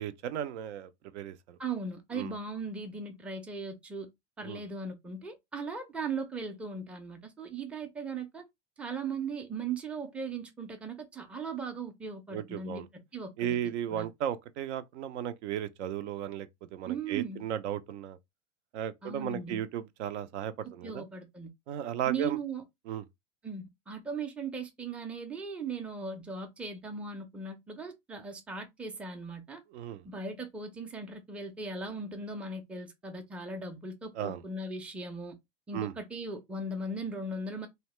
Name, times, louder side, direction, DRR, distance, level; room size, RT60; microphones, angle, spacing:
voice 1, 0.0-1.6 2.2-2.3 4.4-4.6 12.3-12.9 13.4-18.2 18.7-21.0 21.7-22.4 22.9-23.0 29.7-30.0 34.2-34.4 35.7-35.9, right 10 dB, 70° right, 0.5 m, -35 dB
voice 2, 1.6-4.1 4.4-8.4 8.8-13.6 13.9-14.1 16.8-17.4 19.0-19.6 20.6-21.5 22.1-22.6 23.4-29.6 30.0-35.4 35.7-37.7, right 4 dB, 5° right, 0.4 m, -38 dB
2.7 x 2.1 x 3.0 m
hypercardioid pair, 105°, 35 cm